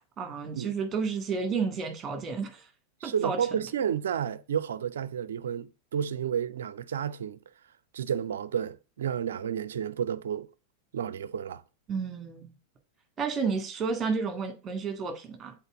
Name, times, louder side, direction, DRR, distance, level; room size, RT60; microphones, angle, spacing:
voice 1, 0.2-2.7 3.0-3.4 11.9-12.5 13.2-15.5, right 5 dB, 25° right, 1.9 m, -31 dB
voice 2, 3.0-7.4 7.9-10.5 10.9-11.6, right 8 dB, 65° right, 0.5 m, -31 dB
8.0 x 4.2 x 3.4 m
figure-of-eight pair, 90°, 0 cm